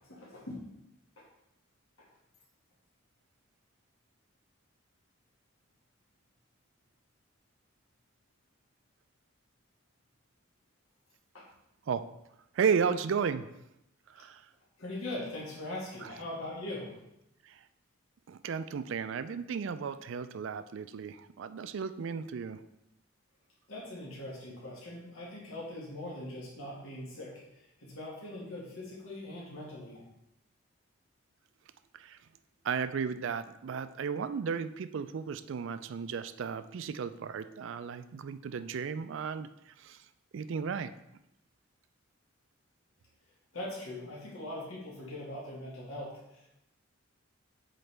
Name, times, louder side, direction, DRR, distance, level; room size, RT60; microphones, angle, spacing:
voice 1, 0.1-0.6 11.3-11.4 14.8-16.9 23.7-27.3 27.8-30.0 43.5-46.5, left 1 dB, 85° left, -5 dB, 1.9 m, -41 dB
voice 2, 12.5-13.5 14.1-14.4 16.0-16.1 17.5-17.6 18.3-22.6 31.9-32.2 32.6-39.5 39.8-40.0 40.3-40.9, right 6 dB, 65° right, 12 dB, 0.3 m, -34 dB
7.8 x 4.1 x 3.4 m, 0.83 s
head